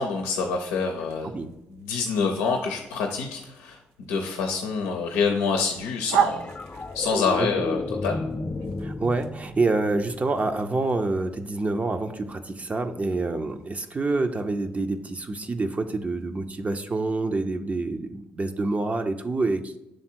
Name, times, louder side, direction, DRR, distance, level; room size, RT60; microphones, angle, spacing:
voice 1, 0.0-1.5 1.8-3.8 4.1-6.5 6.9-8.2, left 5 dB, 85° left, 3 dB, 0.6 m, -26 dB
sound 1, 0.6-17.4, right 8 dB, 90° right, 0.3 m, -37 dB
sound 2, 6.2-10.7 13.1-13.3, left 3 dB, 30° left, 0.7 m, -33 dB
voice 2, 8.8-19.8, right 3 dB, 35° right, 7 dB, 0.6 m, -27 dB
6.4 x 3.6 x 4.4 m, 0.93 s
hypercardioid pair, 50°, 4 cm